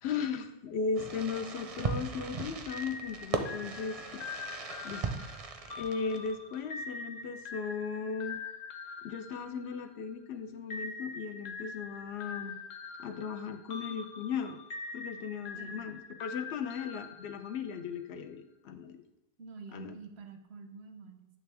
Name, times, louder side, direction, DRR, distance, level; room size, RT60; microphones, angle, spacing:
voice 1, 0.0-4.2 4.8-5.1 5.7-8.4 9.0-12.5 13.0-14.6 14.9-19.0 19.7-19.9, left 5 dB, 80° left, 8 dB, 0.9 m, -37 dB
Fireworks, 0.9-6.5, right 4 dB, 45° right, 0.5 m, -38 dB
sound 1, 2.7-10.1 10.7-17.9, left 4 dB, 55° left, 0.6 m, -44 dB
voice 2, 19.4-21.3, right 4 dB, 85° right, 6 dB, 1.0 m, -48 dB
8.6 x 3.4 x 3.4 m, 0.93 s
omnidirectional pair, 1.1 m